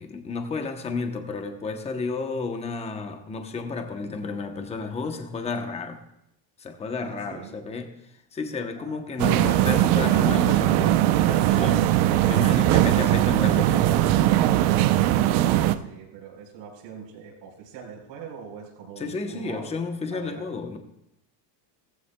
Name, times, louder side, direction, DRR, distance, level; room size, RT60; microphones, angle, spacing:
voice 1, 0.0-6.0 6.6-8.0 8.3-11.9 12.3-14.2 19.0-20.8, left 4 dB, 15° left, 6 dB, 0.8 m, -32 dB
voice 2, 7.0-7.5 8.8-9.0 12.1-12.2 15.4-19.7 20.1-20.4, right 6 dB, 80° right, 0 dB, 4.1 m, -42 dB
sound 1, 9.2-15.8, right 13 dB, 60° right, 0.7 m, -20 dB
17.5 x 14.5 x 2.2 m, 0.83 s
cardioid pair, 170°, 47 cm